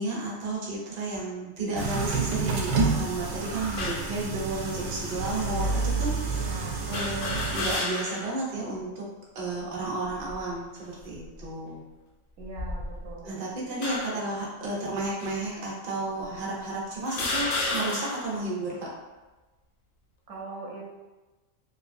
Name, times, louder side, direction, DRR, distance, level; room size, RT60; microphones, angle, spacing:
voice 1, 0.0-9.1 9.3-11.8 13.2-18.9, right 2 dB, 40° right, -5 dB, 0.7 m, -32 dB
sound 1, 1.8-7.7, right 3 dB, 90° right, 1.0 m, -29 dB
sound 2, 3.8-4.2 5.0-5.1 6.9-8.4 8.8-8.9 10.0-10.5 11.2-11.4 12.4-13.2 13.8-14.3 15.2-15.3 16.2-16.3 17.0-18.4, left 2 dB, 65° left, 0.5 m, -32 dB
voice 2, 5.5-6.0 6.3-6.8 12.4-13.4 20.3-21.0, right 2 dB, 70° right, -4 dB, 1.0 m, -41 dB
3.2 x 2.9 x 2.5 m, 1.2 s
omnidirectional pair, 1.3 m